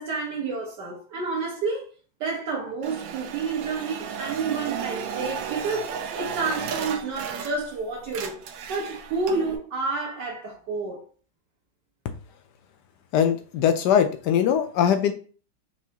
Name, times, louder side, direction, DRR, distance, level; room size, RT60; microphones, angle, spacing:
voice 1, 0.0-1.8 2.2-8.4 8.7-11.0, right 4 dB, 70° right, 1.5 m, -29 dB
sound 1, 2.8-7.8 8.0-9.6, right 7 dB, 85° right, 1.4 m, -34 dB
voice 2, 13.1-15.1, left 8 dB, 75° left, 1.1 m, -21 dB
4.7 x 3.1 x 2.8 m
omnidirectional pair, 2.0 m